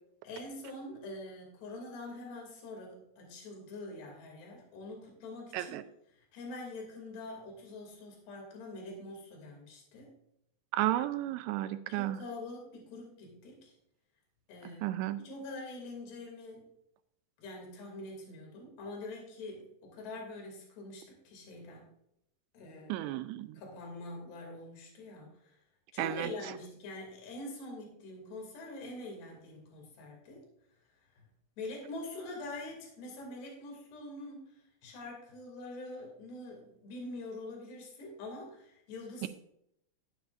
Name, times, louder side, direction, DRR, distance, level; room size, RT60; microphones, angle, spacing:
voice 1, 0.2-5.8 6.1-10.1 11.9-13.7 14.5-16.7 17.4-21.9 22.5-23.0 23.5-25.6 25.9-30.4 31.1-31.2 31.6-39.3, left 2 dB, 70° left, 0 dB, 4.7 m, -45 dB
voice 2, 10.7-12.2 14.8-15.2 22.9-23.6 26.0-26.3 39.2-39.3, right 14 dB, 85° right, 11 dB, 2.8 m, -33 dB
12.5 x 9.5 x 2.5 m, 0.77 s
omnidirectional pair, 5.0 m